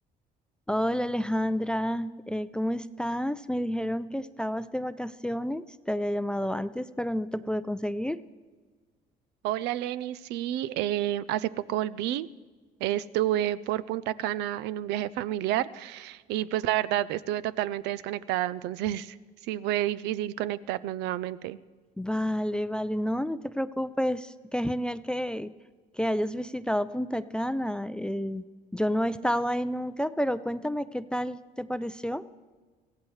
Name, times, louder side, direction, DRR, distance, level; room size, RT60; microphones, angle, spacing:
voice 1, 0.7-8.2 22.0-25.5 25.9-28.4 28.7-32.2, equal, 5° left, 14 dB, 0.4 m, -30 dB
voice 2, 9.4-12.3 12.8-19.1 19.4-21.6, right 13 dB, 90° right, 17 dB, 0.5 m, -29 dB
23.5 x 16.0 x 3.2 m, 1.4 s
cardioid pair, 110°, 17 cm